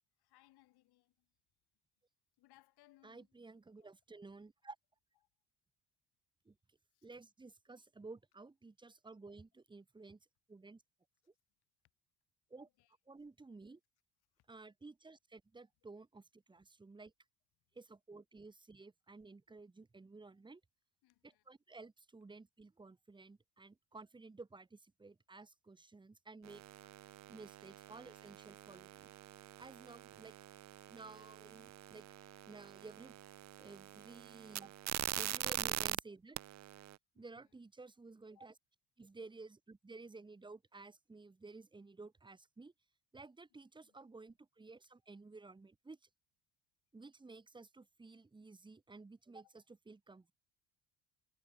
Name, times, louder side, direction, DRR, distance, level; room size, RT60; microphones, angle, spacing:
voice 1, 0.2-1.3 2.4-3.4 3.8-3.9 6.9-7.1 12.5-13.0 14.3-14.5 21.0-21.5 34.6-34.8 37.1-37.5 38.3-38.6 43.8-43.9 49.4-49.5, left 17 dB, 75° left, 7.6 m, -69 dB
voice 2, 3.0-4.8 6.4-6.5 7.0-10.2 10.5-10.8 12.5-12.7 13.1-13.8 14.5-17.1 17.7-20.6 21.2-26.6 27.3-29.1 29.6-30.3 30.9-32.1 32.5-33.2 33.6-34.7 35.2-36.4 37.1-38.5 39.0-42.7 43.1-46.0 46.9-50.3, right 3 dB, 10° right, 1.7 m, -54 dB
sound 1, 26.4-36.0 36.4-37.0, right 14 dB, 45° right, 0.7 m, -44 dB
cardioid pair, 165°, 39 cm